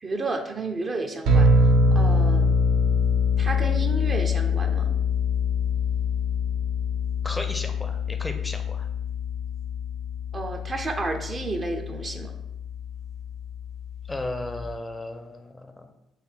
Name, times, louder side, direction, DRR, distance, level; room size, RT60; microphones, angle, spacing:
voice 1, 0.0-1.5 1.9-2.5 3.4-4.9 10.3-12.3, right 2 dB, 35° right, 4 dB, 0.6 m, -31 dB
sound 1, 1.3-14.7, left 3 dB, 65° right, 0.8 m, -24 dB
voice 2, 7.2-8.9 14.1-15.9, left 2 dB, 15° left, 5 dB, 0.5 m, -35 dB
4.1 x 2.7 x 4.2 m, 0.87 s
figure-of-eight pair, 45°, 0 cm